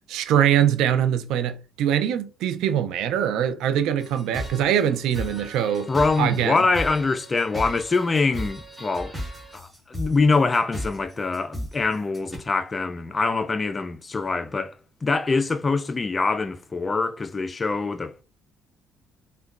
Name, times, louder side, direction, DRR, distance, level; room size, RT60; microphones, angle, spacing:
voice 1, 0.1-5.9 6.2-6.5, right 9 dB, 80° right, 0.3 m, -23 dB
sound 1, 4.0-12.4, equal, 10° right, 1.4 m, -36 dB
voice 2, 5.9-9.1 9.5-18.2, left 3 dB, 25° left, 0.3 m, -24 dB
3.7 x 2.2 x 2.4 m
cardioid pair, 90°, 0 cm